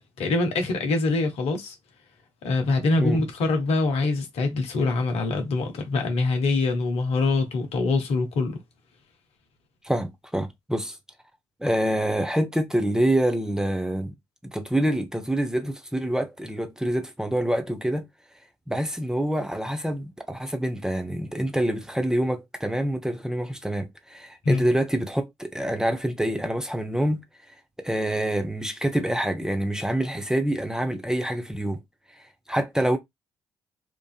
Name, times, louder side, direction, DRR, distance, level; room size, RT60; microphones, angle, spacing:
voice 1, 0.0-1.7 2.4-8.6 24.4-24.6, left 3 dB, 65° left, 0.8 m, -24 dB
voice 2, 9.8-11.0 11.6-14.1 14.4-18.1 18.7-27.2 27.8-31.8 32.5-33.0, right 1 dB, 5° right, 0.8 m, -26 dB
3.0 x 2.4 x 2.4 m
hypercardioid pair, 40°, 11 cm